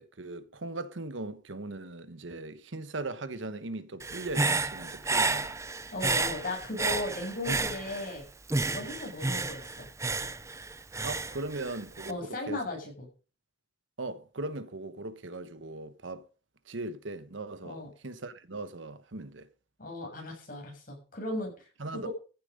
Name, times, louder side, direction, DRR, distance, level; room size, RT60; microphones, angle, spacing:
voice 1, 0.0-5.6 11.0-12.6 14.0-16.3 16.7-19.5 21.8-22.1, right 2 dB, 85° right, 1.2 m, -39 dB
Human voice / Breathing, 4.0-8.2 8.5-12.1, right 3 dB, 15° right, 0.6 m, -31 dB
voice 2, 5.9-8.2 8.7-9.9 12.1-13.1 17.6-17.9 19.8-22.1, left 2 dB, 50° left, 6.7 m, -36 dB
15.0 x 7.4 x 5.3 m
head